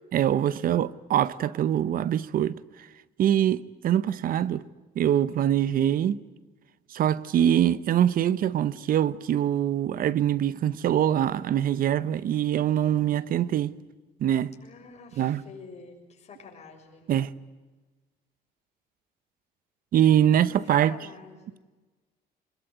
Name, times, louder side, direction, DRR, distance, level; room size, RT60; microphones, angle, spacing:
voice 1, 0.1-2.6 3.2-4.6 5.0-6.2 6.9-13.7 14.2-14.5 15.2-15.4 17.1-17.3 19.9-21.0, right 10 dB, 55° right, 0.9 m, -23 dB
voice 2, 14.6-17.1 20.4-21.6, left 5 dB, 40° left, 6.7 m, -47 dB
24.5 x 21.0 x 9.3 m
cardioid pair, 110°, 17 cm